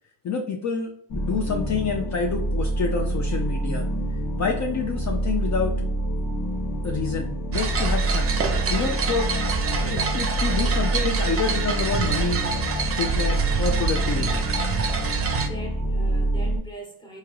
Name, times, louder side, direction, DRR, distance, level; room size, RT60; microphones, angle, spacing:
voice 1, 0.2-3.8 4.4-5.7 6.8-9.3 9.8-12.4 12.9-14.4, left 5 dB, 45° left, 0.5 m, -28 dB
sound 1, 1.1-16.6, right 1 dB, 80° left, 1.1 m, -26 dB
sound 2, 7.5-15.5, right 5 dB, 35° right, 0.6 m, -27 dB
voice 2, 15.2-17.2, right 2 dB, 10° left, 1.1 m, -41 dB
3.6 x 2.8 x 3.0 m
cardioid pair, 115°, 39 cm